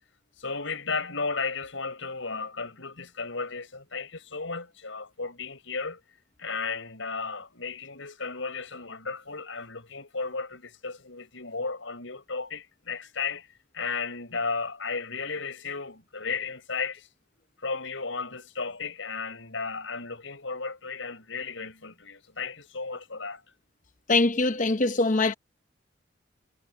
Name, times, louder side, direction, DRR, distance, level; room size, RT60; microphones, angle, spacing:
voice 1, 0.4-6.0 6.4-13.5 13.7-17.1 17.6-23.4, left 4 dB, 75° left, 5.6 m, -34 dB
voice 2, 24.1-25.3, left 3 dB, 40° left, 0.8 m, -23 dB
head